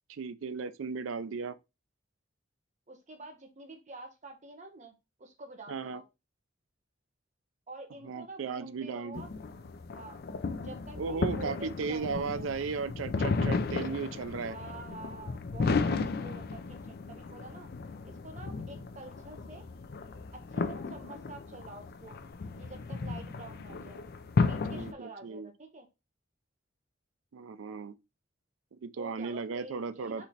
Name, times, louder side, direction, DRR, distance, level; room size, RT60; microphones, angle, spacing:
voice 1, 0.1-1.6 5.7-6.0 8.0-9.2 11.0-14.6 24.7-25.5 27.3-27.9 28.7-30.3, right 5 dB, 90° right, 0.4 m, -36 dB
voice 2, 2.9-6.0 7.7-9.3 9.9-12.5 14.5-17.7 18.0-19.7 20.3-22.1 22.5-24.0 24.5-25.9 29.0-30.3, right 2 dB, 40° right, 1.0 m, -48 dB
sound 1, 9.1-24.9, left 4 dB, 50° left, 0.4 m, -34 dB
4.2 x 3.1 x 4.1 m
head